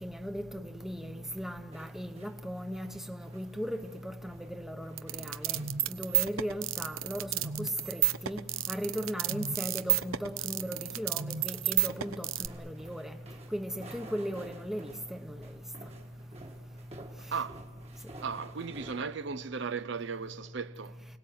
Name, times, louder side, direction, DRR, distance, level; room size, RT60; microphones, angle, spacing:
voice 1, 0.0-5.6 5.9-13.2 13.5-15.4, equal, ahead, 1.0 m, -37 dB
sound 1, 1.7-19.2, right 1 dB, 30° right, 1.7 m, -54 dB
sound 2, 5.0-12.5, right 13 dB, 90° right, 0.8 m, -30 dB
voice 2, 17.3-17.6 18.2-21.0, right 5 dB, 60° right, 0.6 m, -36 dB
29.5 x 19.0 x 7.7 m
head